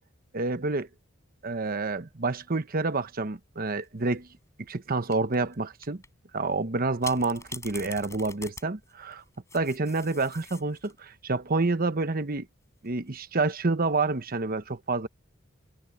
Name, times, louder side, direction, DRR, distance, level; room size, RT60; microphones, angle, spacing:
voice 1, 0.3-0.9 1.4-4.3 4.7-6.0 6.3-9.2 9.5-12.5 12.8-15.1, right 3 dB, 50° right, 1.1 m, -28 dB
sound 1, 3.8-4.2 5.1-5.5 5.8-6.1 7.0-11.0 12.6-13.1, left 3 dB, 15° left, 7.6 m, -44 dB
head